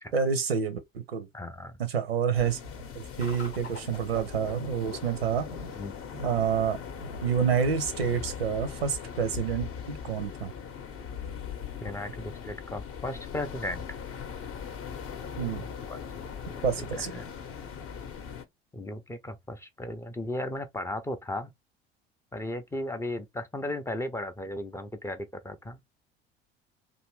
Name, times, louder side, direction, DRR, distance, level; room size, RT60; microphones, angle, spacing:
voice 1, 0.1-1.3 1.8-2.6 3.2-5.5 6.2-6.8 7.2-10.5 15.4-15.7 16.6-17.2, right 7 dB, 85° right, 0.6 m, -28 dB
voice 2, 1.3-1.8 5.8-6.0 11.8-13.8 15.9-16.0 16.5-17.3 18.7-21.5 22.3-25.8, left 1 dB, 10° left, 0.4 m, -36 dB
sound 1, 2.3-18.5, left 6 dB, 45° left, 0.7 m, -41 dB
sound 2, 3.2-15.8, left 5 dB, 85° left, 0.8 m, -44 dB
2.6 x 2.4 x 3.0 m
figure-of-eight pair, 60°, 30 cm